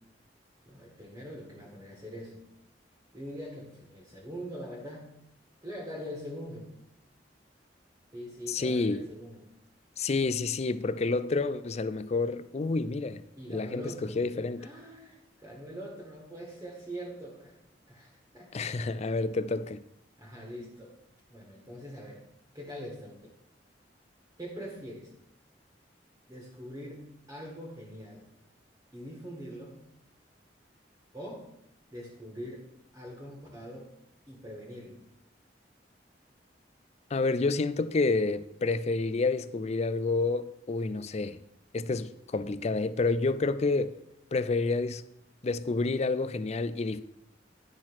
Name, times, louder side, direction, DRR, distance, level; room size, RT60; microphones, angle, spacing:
voice 1, 0.7-2.4 3.1-5.1 5.6-6.7 8.1-9.5 13.4-14.2 14.6-17.6 17.9-18.9 20.2-21.0 21.3-22.2 22.5-23.2 24.4-25.1 26.3-28.2 28.9-29.8 31.1-31.4 31.9-32.7 32.9-33.9 34.3-35.0, equal, 20° right, 1.6 m, -43 dB
voice 2, 8.5-9.0 10.0-13.2 13.5-13.8 14.2-14.7 18.5-19.8 37.1-41.4 41.7-44.0 44.3-45.0 45.4-47.0, left 3 dB, 40° left, 0.4 m, -29 dB
10.5 x 4.4 x 6.1 m
head